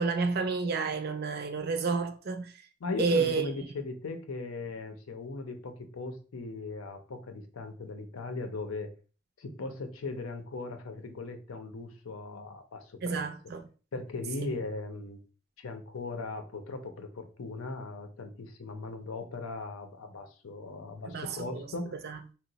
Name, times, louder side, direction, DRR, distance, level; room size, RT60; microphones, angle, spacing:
voice 1, 0.0-2.5 3.0-3.5 13.0-13.6 21.1-21.7 22.0-22.2, right 4 dB, 50° right, 0.4 m, -30 dB
voice 2, 2.8-8.9 9.4-13.2 13.9-15.2 15.6-22.0, left 3 dB, 90° left, 0.6 m, -38 dB
2.8 x 2.0 x 3.9 m
head